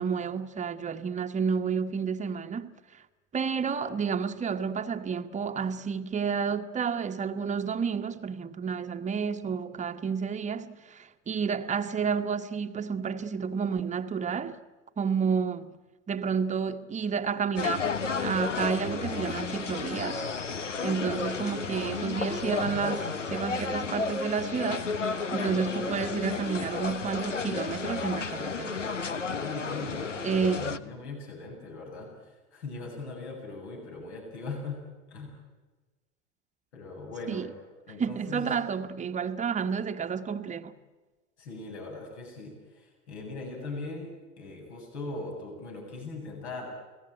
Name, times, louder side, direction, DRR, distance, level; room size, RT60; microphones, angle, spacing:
voice 1, 0.0-2.8 3.3-14.6 15.0-15.7 16.1-17.9 18.2-20.3 20.8-28.8 30.2-30.8 37.3-37.5 38.0-40.7, right 6 dB, 20° right, 1.3 m, -30 dB
sound 1, 17.6-30.8, left 4 dB, 85° left, 1.1 m, -32 dB
voice 2, 29.4-34.8 35.1-35.3 36.7-37.5 37.9-38.5 41.4-44.1 44.4-46.7, left 3 dB, 65° left, 7.9 m, -40 dB
29.0 x 19.0 x 9.1 m
figure-of-eight pair, 80°, 36 cm